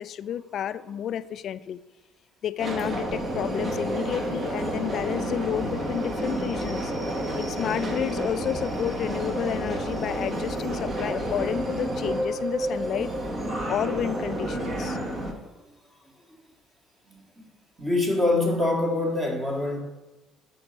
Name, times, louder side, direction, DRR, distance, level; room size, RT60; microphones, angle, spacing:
voice 1, 0.0-1.8 2.4-6.9 7.4-13.1 13.7-15.0, left 10 dB, 50° left, 15 dB, 0.3 m, -31 dB
Subway metro underground, 2.6-15.3, right 1 dB, 25° right, 1.2 m, -30 dB
voice 2, 17.8-19.8, left 2 dB, 10° right, 0 dB, 1.8 m, -24 dB
6.9 x 6.4 x 5.1 m, 1.1 s
cardioid pair, 125°, 0 cm